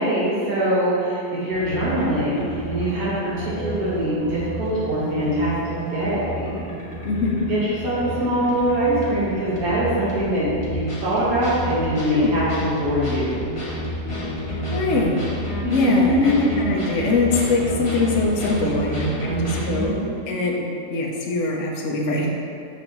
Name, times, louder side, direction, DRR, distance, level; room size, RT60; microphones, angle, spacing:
voice 1, 0.0-6.6 7.5-7.6 7.8-13.3 15.6-16.5 19.2-20.1, equal, 75° right, -10 dB, 1.9 m, -23 dB
sound 1, 1.5-19.9, equal, 25° left, 1.1 m, -30 dB
voice 2, 7.0-7.4 12.1-12.7 14.7-15.3 15.7-22.3, left 3 dB, 60° left, -2 dB, 1.0 m, -23 dB
6.8 x 6.2 x 3.0 m, 2.5 s
omnidirectional pair, 1.6 m